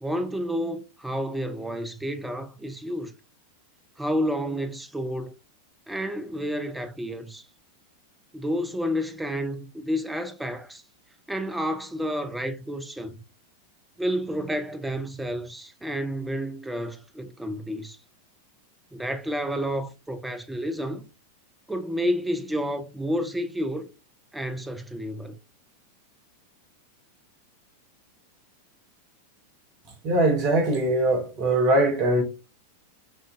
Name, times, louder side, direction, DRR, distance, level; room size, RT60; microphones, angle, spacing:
voice 1, 0.0-3.1 4.0-5.4 5.9-7.4 8.3-10.8 11.3-13.2 14.0-18.0 18.9-21.0 21.7-23.9 24.3-25.4, equal, 5° right, 0.5 m, -30 dB
voice 2, 30.0-32.2, right 1 dB, 40° right, 1.0 m, -21 dB
6.2 x 2.6 x 2.4 m
figure-of-eight pair, 90°, 0 cm